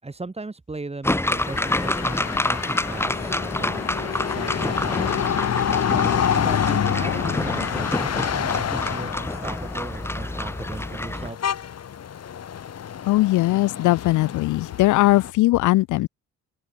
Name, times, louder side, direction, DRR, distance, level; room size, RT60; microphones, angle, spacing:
voice 1, 0.0-5.2 6.3-11.4, right 3 dB, 20° right, 6.0 m, -37 dB
sound 1, 1.0-11.3, left 1 dB, 10° left, 2.3 m, -27 dB
sound 2, 1.3-15.3, left 8 dB, 55° left, 4.0 m, -28 dB
voice 2, 13.1-16.1, left 18 dB, 80° left, 0.6 m, -19 dB
open air
cardioid pair, 90°, 30 cm